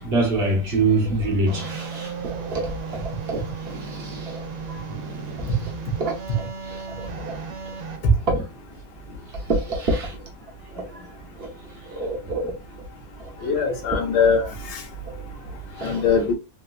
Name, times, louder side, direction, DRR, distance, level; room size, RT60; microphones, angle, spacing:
voice 1, 0.0-3.4 3.7-4.8 6.0-7.4 8.3-8.4 9.3-10.2 10.7-11.1 11.3-11.5 11.8-12.5 13.2-13.5 15.8-16.0, right 2 dB, 45° right, 1.0 m, -26 dB
sound 1, 1.5-8.0, right 5 dB, 80° right, 1.3 m, -35 dB
voice 2, 13.4-14.8 15.8-16.3, left 5 dB, 80° left, 1.4 m, -21 dB
3.8 x 2.3 x 2.4 m
omnidirectional pair, 1.8 m